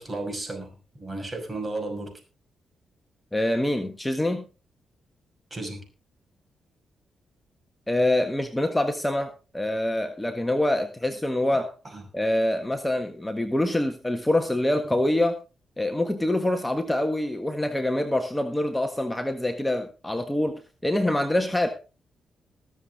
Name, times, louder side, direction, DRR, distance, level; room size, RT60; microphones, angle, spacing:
voice 1, 0.0-2.2 5.5-5.8 11.5-12.0, right 2 dB, 30° right, 4 dB, 5.7 m, -34 dB
voice 2, 3.3-4.4 7.9-11.7 12.1-15.4 15.8-21.7, left 1 dB, 10° left, 6 dB, 1.5 m, -25 dB
20.5 x 7.3 x 3.7 m, 0.33 s
supercardioid pair, 50°, 0 cm